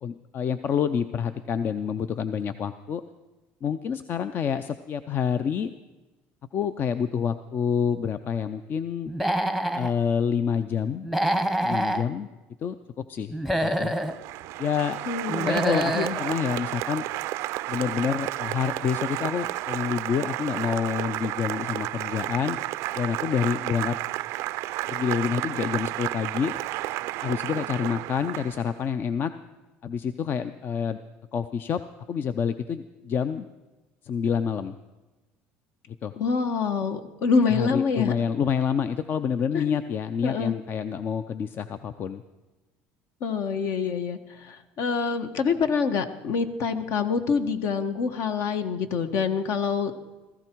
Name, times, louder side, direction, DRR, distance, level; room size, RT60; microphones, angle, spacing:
voice 1, 0.0-3.0 3.6-5.7 6.5-9.1 9.7-11.1 11.6-12.3 12.6-13.9 14.6-15.0 15.4-17.0 17.7-22.6 23.0-24.0 24.9-26.5 27.2-29.3 29.8-31.0 31.3-31.8 32.1-33.5 34.0-34.7 36.0-36.1 37.5-42.2, left 7 dB, 45° left, 12 dB, 0.6 m, -28 dB
Human voice / Animal, 9.1-9.9 11.0-12.0 13.3-14.1 15.3-16.1, right 1 dB, 5° left, 1.0 m, -26 dB
Applause, 14.0-28.8, right 17 dB, 70° right, 0.4 m, -32 dB
voice 2, 15.1-16.2 36.2-38.1 39.5-39.7 40.2-40.5 43.2-49.9, left 5 dB, 65° left, 8 dB, 1.4 m, -26 dB
17.0 x 15.0 x 4.6 m, 1.1 s
supercardioid pair, 110°, 5 cm